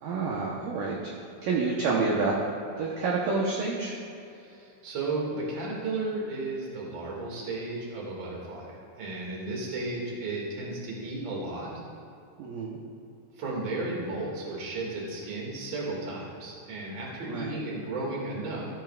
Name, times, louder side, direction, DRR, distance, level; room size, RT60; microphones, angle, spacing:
voice 1, 0.0-1.0 1.4-2.3 2.8-3.9 12.4-12.8 17.3-17.6, right 4 dB, 70° right, -3 dB, 2.2 m, -28 dB
voice 2, 4.3-11.7 13.4-18.7, right 2 dB, 40° right, -3 dB, 2.0 m, -34 dB
15.5 x 9.4 x 2.4 m, 2.6 s
omnidirectional pair, 4.9 m